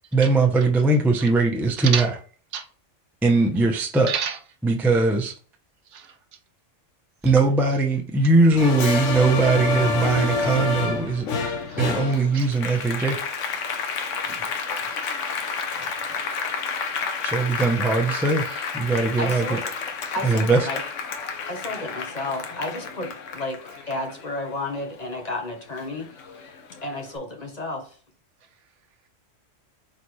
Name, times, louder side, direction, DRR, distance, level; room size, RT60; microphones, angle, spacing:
voice 1, 0.1-2.1 3.2-4.1 4.6-5.3 7.2-11.3 11.8-13.2 17.2-18.5 18.7-19.6 20.2-20.7, right 3 dB, ahead, 0.5 m, -20 dB
voice 2, 1.8-2.1 2.5-2.7 4.1-4.4 5.9-6.2 7.2-7.3 11.7-11.9 12.3-12.5 14.2-16.0 18.4-18.7, right 7 dB, 75° right, 1.1 m, -33 dB
Applause, 8.6-25.4 25.8-26.9, left 4 dB, 80° left, 1.1 m, -29 dB
voice 3, 19.2-19.6 20.1-20.8 21.5-23.6 23.9-26.1 26.8-27.9, left 2 dB, 35° left, 1.0 m, -31 dB
4.1 x 4.1 x 3.1 m
omnidirectional pair, 1.3 m